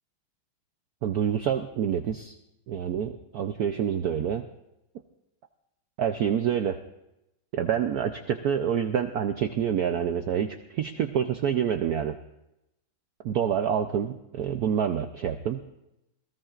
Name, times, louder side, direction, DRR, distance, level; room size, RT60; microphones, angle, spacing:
voice 1, 1.0-2.4 2.7-4.5 6.0-6.8 7.5-12.2 13.2-15.6, right 8 dB, 75° right, 8 dB, 0.8 m, -27 dB
27.5 x 17.5 x 2.5 m, 0.90 s
omnidirectional pair, 2.3 m